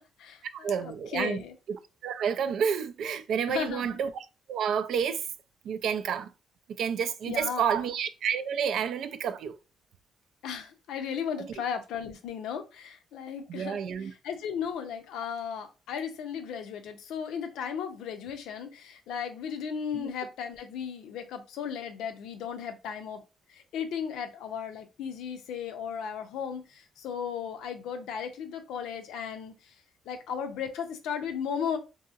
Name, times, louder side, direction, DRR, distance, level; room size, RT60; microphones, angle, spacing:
voice 1, 0.0-1.5 3.5-3.9 7.3-7.9 10.4-23.2 23.5-31.8, left 7 dB, 85° left, 0.5 m, -36 dB
voice 2, 0.6-1.4 1.7-1.8 2.0-4.1 4.5-5.3 5.6-6.3 6.8-9.6 13.5-14.1 19.9-20.1, right 7 dB, 70° right, 0.3 m, -29 dB
2.8 x 2.6 x 2.4 m
cardioid pair, 90°, 0 cm